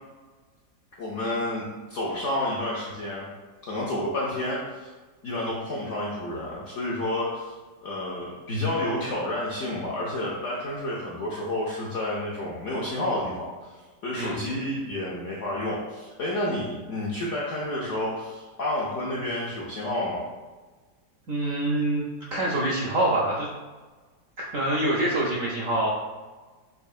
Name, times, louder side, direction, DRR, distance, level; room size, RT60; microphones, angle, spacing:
voice 1, 1.0-3.3 3.7-4.9 5.2-7.5 7.8-13.5 14.0-20.3, left 1 dB, 70° left, -6 dB, 0.7 m, -30 dB
voice 2, 14.2-14.5 21.3-22.0 22.3-23.5 24.4-25.9, right 1 dB, 70° right, -4 dB, 0.8 m, -25 dB
5.4 x 2.6 x 2.4 m, 1.3 s
omnidirectional pair, 1.9 m